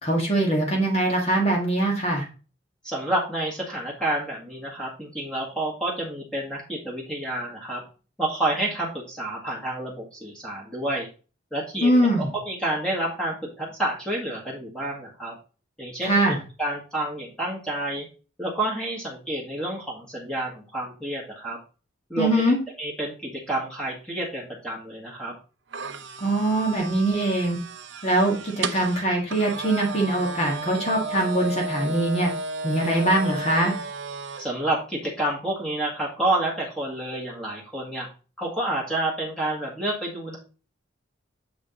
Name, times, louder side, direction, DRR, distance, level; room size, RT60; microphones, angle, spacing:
voice 1, 0.0-2.2 11.8-12.3 16.0-16.4 22.2-22.6 26.2-27.6 28.0-32.3 32.6-33.7, right 1 dB, 30° left, 0 dB, 1.7 m, -22 dB
voice 2, 2.8-7.8 8.2-11.1 11.5-15.3 15.8-16.2 16.6-18.1 18.4-21.6 22.1-22.3 22.8-25.3 34.4-38.1 38.4-40.4, right 1 dB, 5° left, -3 dB, 1.7 m, -29 dB
sound 1, 25.7-34.5, right 3 dB, 65° right, 0.7 m, -34 dB
7.2 x 5.0 x 3.7 m, 0.34 s
head